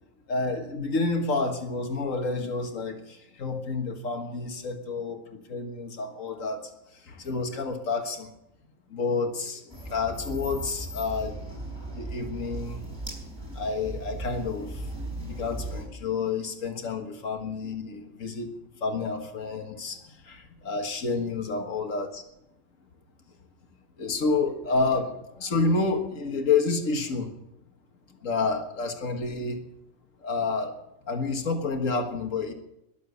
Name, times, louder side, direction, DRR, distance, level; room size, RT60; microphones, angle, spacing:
voice 1, 0.3-6.6 7.1-8.3 8.9-9.6 9.9-11.4 11.9-12.8 13.5-14.7 15.2-18.5 18.8-20.0 20.3-22.2 24.0-27.3 28.2-29.6 30.2-30.7 31.1-32.5, left 4 dB, 85° left, 5 dB, 2.0 m, -29 dB
sound 1, 9.7-15.8, right 1 dB, 20° right, 4.7 m, -37 dB
21.5 x 7.4 x 6.9 m, 0.85 s
omnidirectional pair, 1.3 m